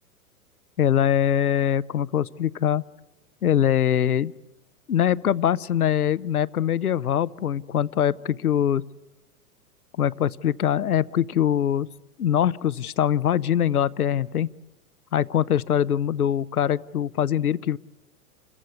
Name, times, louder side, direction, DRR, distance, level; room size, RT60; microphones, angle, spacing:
voice 1, 0.8-2.8 3.4-4.3 4.9-8.8 10.0-11.9 12.2-14.5 15.1-17.8, left 10 dB, 75° left, 19 dB, 0.7 m, -23 dB
28.5 x 15.0 x 9.4 m, 1.0 s
figure-of-eight pair, 100°, 44 cm